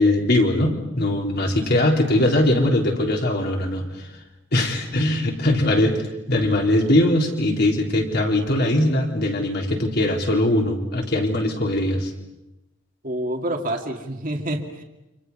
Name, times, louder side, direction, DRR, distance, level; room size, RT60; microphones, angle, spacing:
voice 1, 0.0-3.8 4.5-12.1, left 1 dB, 55° left, 1 dB, 3.9 m, -21 dB
voice 2, 13.0-14.8, right 1 dB, 45° right, 2 dB, 2.3 m, -28 dB
29.5 x 26.5 x 5.6 m, 0.93 s
head